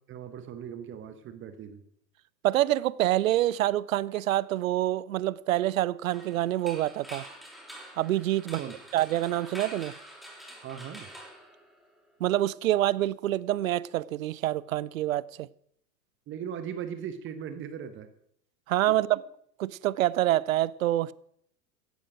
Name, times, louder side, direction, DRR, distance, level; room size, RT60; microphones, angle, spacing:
voice 1, 0.1-1.8 8.6-8.7 10.6-11.1 16.3-18.1 18.9-19.0, right 8 dB, 25° right, 1.1 m, -38 dB
voice 2, 2.4-7.2 8.0-8.6 8.9-9.9 12.2-15.5 18.7-19.2 19.6-21.1, right 14 dB, 55° right, 0.6 m, -26 dB
sound 1, 6.1-12.1, right 1 dB, ahead, 3.1 m, -46 dB
16.0 x 11.5 x 5.0 m
figure-of-eight pair, 95°, 49 cm